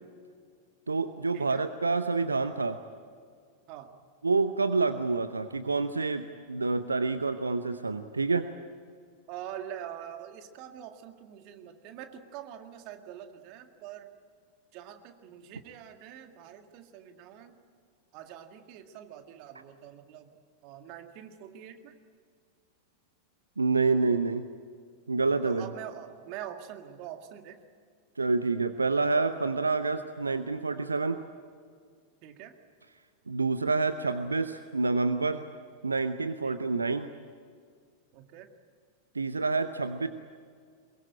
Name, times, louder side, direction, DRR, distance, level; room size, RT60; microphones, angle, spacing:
voice 1, 0.9-2.8 4.2-8.5 23.6-24.4 25.1-25.6 28.2-31.2 33.3-35.4 35.8-37.1 39.1-40.1, right 3 dB, 80° right, 11 dB, 0.8 m, -28 dB
voice 2, 9.3-14.1 14.7-17.6 18.1-20.3 20.6-21.9 25.4-27.6 32.2-32.5 36.4-36.6 38.1-38.5, right 10 dB, 45° right, 6 dB, 2.0 m, -44 dB
23.0 x 22.5 x 9.0 m, 2.1 s
figure-of-eight pair, 90°, 0 cm